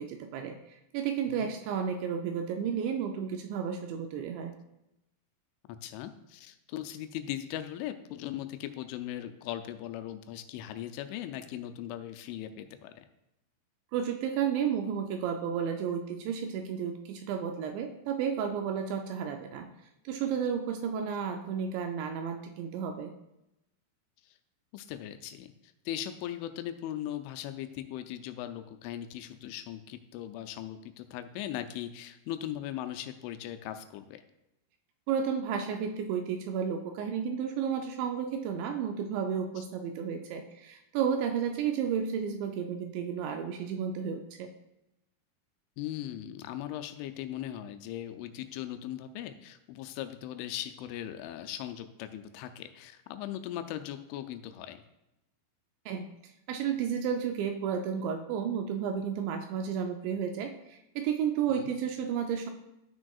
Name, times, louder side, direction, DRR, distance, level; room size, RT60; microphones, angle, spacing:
voice 1, 0.0-4.5 13.9-19.7 20.1-23.1 35.1-44.5 55.9-56.1 56.5-62.5, right 7 dB, 85° right, 4 dB, 2.6 m, -32 dB
voice 2, 5.8-13.1 24.2-24.4 24.7-34.2 39.6-39.7 45.8-54.8 61.5-61.7, left 12 dB, 85° left, 9 dB, 3.0 m, -39 dB
13.0 x 6.1 x 2.3 m, 0.89 s
omnidirectional pair, 5.5 m